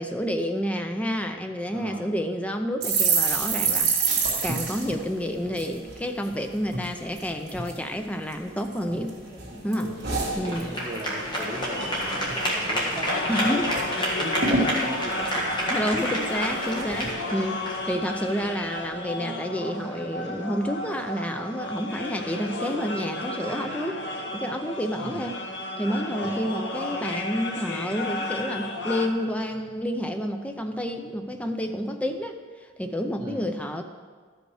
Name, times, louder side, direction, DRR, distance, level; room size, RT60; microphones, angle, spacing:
voice 1, 0.0-4.0 4.4-9.2 9.6-9.9 10.4-10.6 13.3-13.8 15.7-25.4 25.8-32.4 32.8-33.8, equal, 5° left, 5 dB, 0.5 m, -29 dB
voice 2, 1.7-2.1 8.9-9.1 9.8-13.9 14.1-15.6 16.1-16.3 17.0-17.5 18.0-18.1 25.0-25.3 26.2-26.4 33.2-33.5, right 1 dB, 20° right, -3 dB, 1.4 m, -38 dB
sound 1, 2.8-6.3 6.7-6.9 7.2-7.8 8.3-9.1 9.4-11.1 11.4-11.6 11.9-12.4 12.8-12.9 13.2-13.8 14.1-14.2 14.4-16.3 16.8-17.1, right 4 dB, 50° right, 1.9 m, -28 dB
sound 2, 8.9-18.9, equal, 20° left, 1.6 m, -31 dB
sound 3, 13.1-29.1, left 2 dB, 55° left, 0.9 m, -33 dB
12.5 x 5.2 x 4.9 m, 1.5 s
head